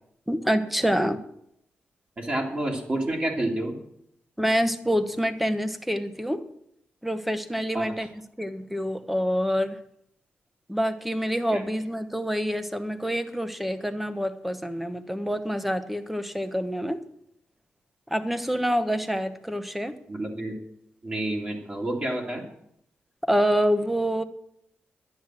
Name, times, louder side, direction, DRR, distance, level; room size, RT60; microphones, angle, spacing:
voice 1, 0.3-1.2 4.4-6.4 7.0-8.1 8.4-9.8 10.7-17.0 18.1-20.0 23.2-24.2, equal, 5° right, 11 dB, 1.0 m, -26 dB
voice 2, 2.2-3.7 7.7-8.1 11.5-11.6 20.1-20.5 21.0-22.5, right 1 dB, 30° right, -1 dB, 2.5 m, -29 dB
11.5 x 10.5 x 7.5 m, 0.75 s
wide cardioid pair, 110°, 4 cm